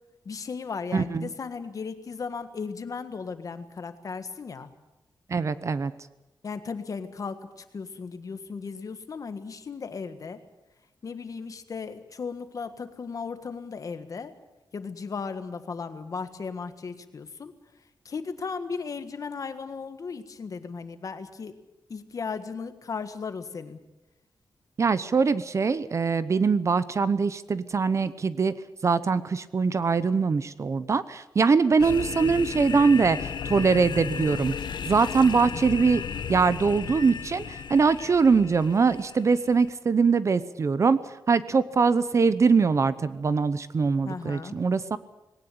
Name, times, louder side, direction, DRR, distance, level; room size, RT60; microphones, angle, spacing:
voice 1, 0.3-4.7 6.4-10.4 11.0-14.3 14.7-17.5 18.1-21.5 21.9-23.8 44.1-44.6, left 5 dB, 50° left, 9 dB, 1.6 m, -36 dB
voice 2, 0.9-1.3 5.3-5.9 24.8-28.5 28.8-34.5 34.8-36.0 36.3-41.0 41.3-45.0, right 5 dB, 40° right, 15 dB, 0.8 m, -22 dB
sound 1, 31.8-39.7, left 7 dB, 75° left, 1.1 m, -35 dB
20.0 x 18.0 x 8.6 m, 1.0 s
wide cardioid pair, 155°, 8 cm